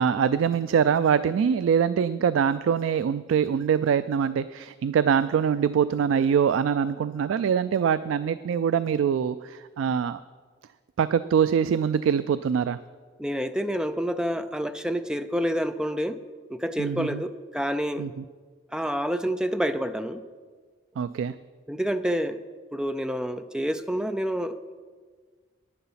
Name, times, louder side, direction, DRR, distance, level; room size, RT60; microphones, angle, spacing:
voice 1, 0.0-10.2 11.0-12.8 16.8-17.2 18.0-18.2 21.0-21.3, right 7 dB, 85° right, 14 dB, 0.3 m, -24 dB
voice 2, 13.2-16.2 16.5-18.1 18.7-20.2 21.7-22.4 22.7-24.7, equal, 5° right, 10 dB, 0.4 m, -28 dB
11.0 x 9.4 x 5.7 m, 1.5 s
head